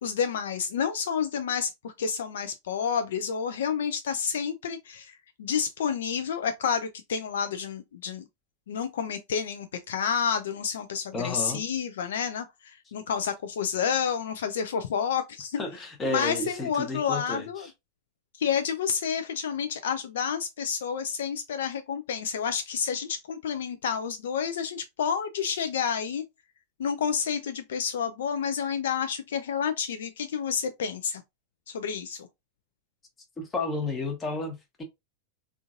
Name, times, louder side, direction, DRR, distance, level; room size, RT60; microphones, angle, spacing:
voice 1, 0.0-8.2 8.7-15.6 16.1-17.7 18.4-26.2 26.8-31.2 31.7-32.3, left 7 dB, 60° left, 0.4 m, -29 dB
voice 2, 11.1-11.6 15.6-17.5 33.4-34.8, left 2 dB, 20° left, 1.0 m, -32 dB
3.7 x 2.5 x 2.5 m
figure-of-eight pair, 90°, 0 cm